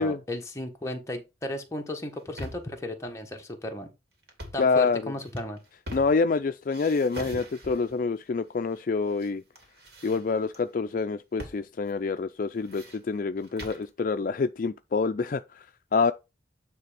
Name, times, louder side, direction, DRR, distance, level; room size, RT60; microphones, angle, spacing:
voice 1, 0.0-3.9 4.5-5.6, left 1 dB, 15° left, 1.3 m, -35 dB
sound 1, 2.0-2.8 4.2-4.7 5.2-6.4 6.7-8.0 8.7-9.3 9.5-10.6 11.4-11.6 11.9-12.0 12.4-13.9, equal, 60° right, 2.3 m, -42 dB
voice 2, 4.6-5.1 5.9-9.4 10.0-15.6 15.9-16.1, left 4 dB, 45° left, 0.4 m, -27 dB
9.3 x 3.3 x 5.0 m
head